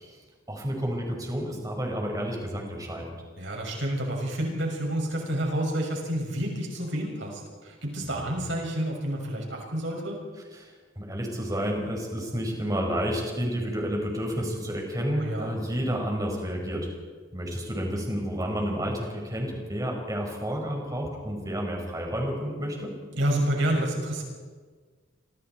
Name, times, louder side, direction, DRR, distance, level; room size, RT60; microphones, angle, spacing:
voice 1, 0.5-3.1 8.0-8.4 10.5-16.9 17.3-22.9, equal, 20° right, 0 dB, 5.4 m, -30 dB
voice 2, 3.4-10.2 15.1-15.5 23.1-24.2, right 1 dB, 65° right, 0 dB, 6.8 m, -29 dB
27.0 x 26.0 x 4.6 m, 1.5 s
head